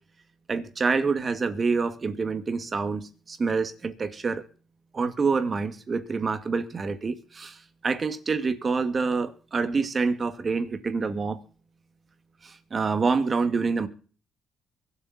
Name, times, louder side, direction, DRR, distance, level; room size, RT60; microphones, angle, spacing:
voice 1, 0.5-4.4 4.9-11.4 12.4-13.9, right 4 dB, 35° right, 2.3 m, -27 dB
23.5 x 8.3 x 4.4 m
cardioid pair, 90°, 0 cm